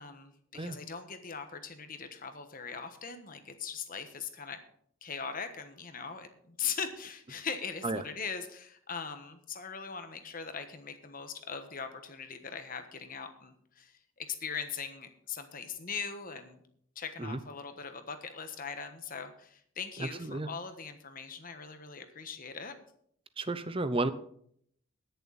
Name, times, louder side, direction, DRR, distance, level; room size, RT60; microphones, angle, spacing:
voice 1, 0.0-4.6 5.0-16.6 16.9-22.8, left 6 dB, 40° left, 8 dB, 1.3 m, -40 dB
voice 2, 20.0-20.5 23.4-24.1, right 2 dB, 25° right, 13 dB, 0.6 m, -32 dB
20.5 x 7.0 x 4.1 m, 0.66 s
head